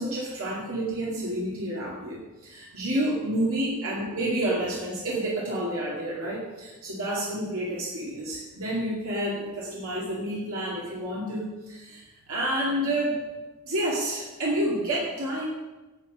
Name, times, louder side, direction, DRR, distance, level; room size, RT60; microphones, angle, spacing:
voice 1, 0.0-13.2 13.6-15.5, right 1 dB, 75° right, -5 dB, 2.4 m, -29 dB
9.1 x 8.5 x 6.3 m, 1.1 s
head